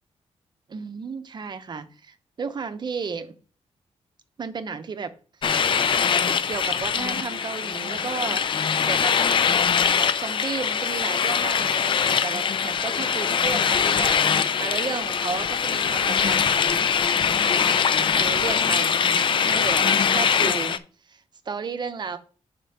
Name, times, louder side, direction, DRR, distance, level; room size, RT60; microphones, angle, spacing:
voice 1, 0.7-3.4 4.4-5.1 6.2-9.1 10.0-16.9 17.6-20.8 21.1-22.2, right 5 dB, 40° right, 10 dB, 0.7 m, -34 dB
sound 1, 5.4-20.8, left 7 dB, 45° left, 0.4 m, -22 dB
5.0 x 4.9 x 5.6 m, 0.38 s
wide cardioid pair, 165°, 12 cm